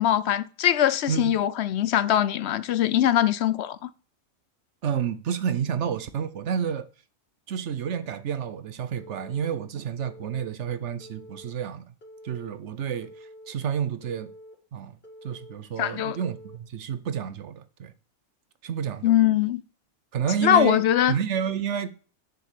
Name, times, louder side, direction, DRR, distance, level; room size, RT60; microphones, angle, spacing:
voice 1, 0.0-3.9 15.8-16.2 19.0-19.6 20.4-21.1, left 11 dB, 65° left, 0.7 m, -22 dB
voice 2, 4.8-6.9 7.5-11.8 12.2-13.1 13.5-14.3 14.7-15.0 15.2-17.9 18.6-19.2 20.1-20.8 21.1-21.9, right 8 dB, 60° right, 1.0 m, -29 dB
Telephone, 9.0-9.5 10.0-10.5 11.0-11.5 12.0-12.5 13.0-13.5 14.0-14.5 15.0-15.5 16.0-16.6, equal, 40° left, 2.4 m, -47 dB
7.0 x 6.7 x 6.7 m
omnidirectional pair, 1.5 m